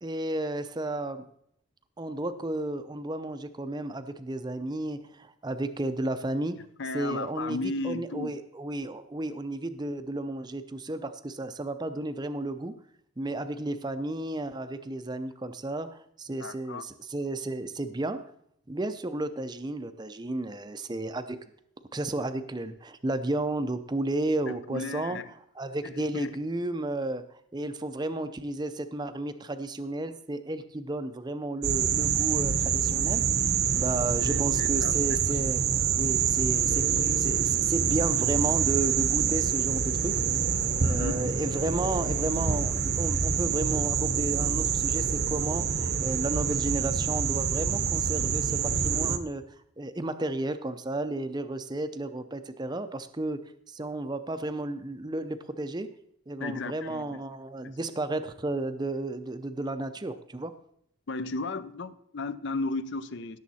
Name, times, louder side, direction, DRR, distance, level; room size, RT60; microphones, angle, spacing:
voice 1, 0.0-1.2 2.0-6.6 6.9-12.7 13.2-18.2 18.7-21.4 21.9-25.2 25.6-27.2 27.5-33.2 33.7-35.6 36.0-40.1 40.8-49.4 49.8-55.9 56.3-60.5, right 2 dB, 20° right, 10 dB, 0.5 m, -33 dB
voice 2, 6.8-8.4 16.4-16.8 24.5-25.2 25.8-26.3 34.2-35.2 40.8-41.2 56.4-57.2 61.1-63.4, left 3 dB, 55° left, 15 dB, 0.6 m, -35 dB
sound 1, 31.6-49.2, right 7 dB, 50° right, 0.8 m, -26 dB
17.0 x 7.1 x 4.2 m, 0.71 s
head